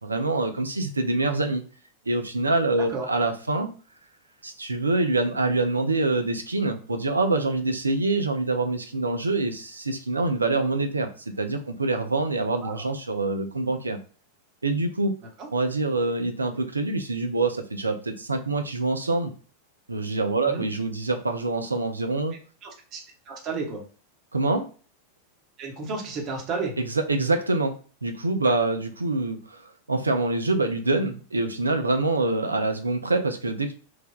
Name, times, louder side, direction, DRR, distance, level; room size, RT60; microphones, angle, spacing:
voice 1, 0.0-1.6 2.1-3.7 4.4-11.1 11.4-14.0 14.6-15.1 15.5-19.3 19.9-22.4 24.3-24.7 26.8-33.7, right 2 dB, 80° right, 6 dB, 0.3 m, -25 dB
voice 2, 22.6-23.0 23.3-23.8 25.6-26.8, right 4 dB, 35° right, 1 dB, 0.8 m, -32 dB
3.2 x 2.2 x 2.2 m, 0.38 s
figure-of-eight pair, 90°, 0 cm